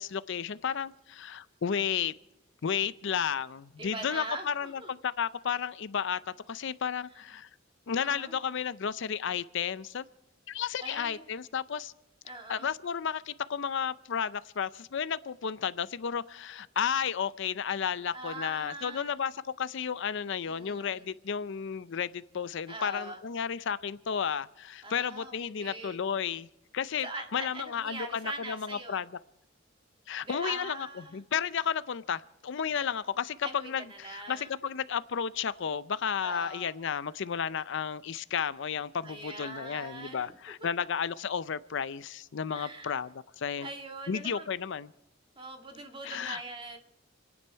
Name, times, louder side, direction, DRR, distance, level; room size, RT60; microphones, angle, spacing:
voice 1, 0.0-2.1 2.6-6.2 6.5-7.5 7.9-10.0 10.5-11.9 12.5-26.5 26.7-29.1 30.1-43.7 44.1-44.9 46.0-46.4, left 7 dB, 60° left, 0.5 m, -33 dB
voice 2, 3.8-4.9 7.9-8.4 10.8-11.2 12.2-12.7 18.1-19.1 20.5-21.0 22.7-23.2 24.8-26.0 27.0-29.0 30.2-31.2 32.8-32.9 33.4-34.5 36.2-36.7 39.0-40.3 40.6-40.7 42.5-43.0 43.6-44.5 45.4-46.8, right 2 dB, 25° right, 1.9 m, -42 dB
29.0 x 9.7 x 4.6 m
head